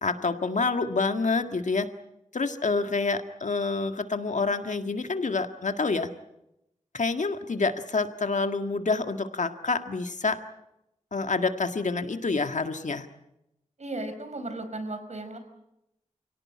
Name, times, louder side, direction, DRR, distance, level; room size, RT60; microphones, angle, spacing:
voice 1, 0.0-1.9 2.3-6.1 6.9-10.4 11.1-13.1, left 4 dB, 75° left, 7 dB, 1.9 m, -27 dB
voice 2, 13.8-15.4, right 2 dB, 65° right, 8 dB, 5.0 m, -35 dB
29.0 x 17.5 x 8.6 m, 0.86 s
wide cardioid pair, 70°, 13 cm